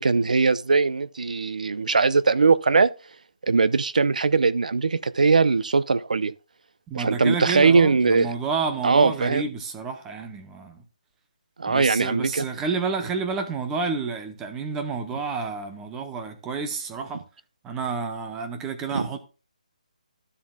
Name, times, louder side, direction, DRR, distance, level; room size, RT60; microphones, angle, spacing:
voice 1, 0.0-2.9 3.5-6.3 6.9-8.4 8.8-9.5 11.6-12.5 18.9-19.1, right 4 dB, 70° right, 0.7 m, -20 dB
voice 2, 6.9-10.8 11.7-17.2 17.6-19.2, right 4 dB, 5° right, 0.7 m, -30 dB
12.5 x 7.3 x 2.3 m
hypercardioid pair, 175°, 4 cm